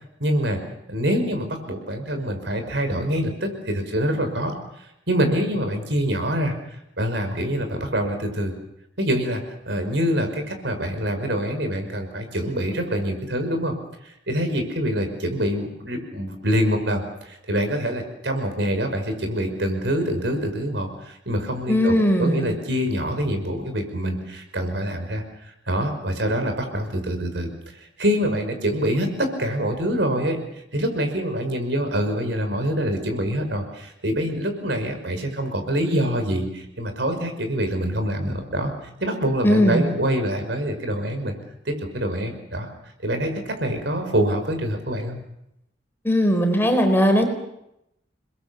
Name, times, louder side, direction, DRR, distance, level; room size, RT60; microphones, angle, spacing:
voice 1, 0.2-0.6 0.9-4.5 5.1-6.5 7.0-8.5 9.0-13.7 14.0-21.9 22.2-30.4 30.7-38.7 39.0-41.4 41.7-42.7 43.0-45.2, equal, 70° right, 6 dB, 5.4 m, -25 dB
voice 2, 21.7-22.5 39.4-39.9 46.0-47.2, equal, 10° left, 4 dB, 4.3 m, -18 dB
30.0 x 21.5 x 7.1 m, 0.82 s
head